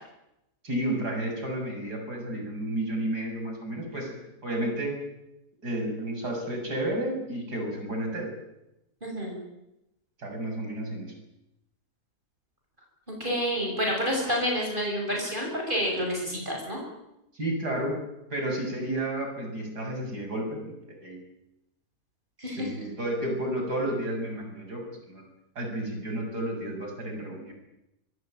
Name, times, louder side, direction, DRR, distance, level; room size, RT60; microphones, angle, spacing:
voice 1, 0.6-4.1 4.4-4.9 5.6-8.3 10.2-11.1 17.3-18.0 18.3-21.2 22.6-25.2 25.6-27.5, right 1 dB, 75° right, 2 dB, 7.7 m, -31 dB
voice 2, 9.0-9.4 13.1-16.8 22.4-22.9, equal, 30° right, -1 dB, 7.1 m, -29 dB
26.5 x 20.5 x 9.1 m, 0.89 s
omnidirectional pair, 1.7 m